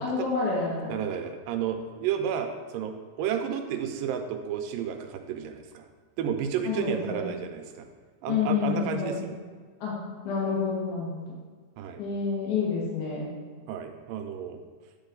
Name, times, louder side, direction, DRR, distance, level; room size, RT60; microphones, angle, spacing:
voice 1, 0.0-0.9 6.6-7.3 8.3-9.2 9.8-10.0 10.2-11.2 12.0-13.3, left 5 dB, 65° left, -6 dB, 2.5 m, -28 dB
voice 2, 0.9-5.9 6.2-7.9 8.2-9.3 11.8-12.0 13.7-14.6, right 8 dB, 85° right, 6 dB, 2.3 m, -32 dB
8.8 x 4.0 x 3.9 m, 1.5 s
omnidirectional pair, 3.9 m